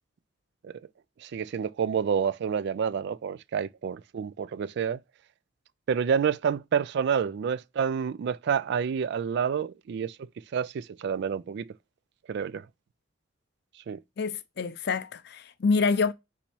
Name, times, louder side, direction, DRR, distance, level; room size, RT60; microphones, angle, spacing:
voice 1, 1.2-5.0 5.9-10.2 10.5-11.8 12.3-12.7 13.9-14.0, right 7 dB, 60° right, 0.3 m, -28 dB
voice 2, 14.2-16.1, left 4 dB, 55° left, 0.5 m, -26 dB
4.1 x 2.8 x 4.4 m
head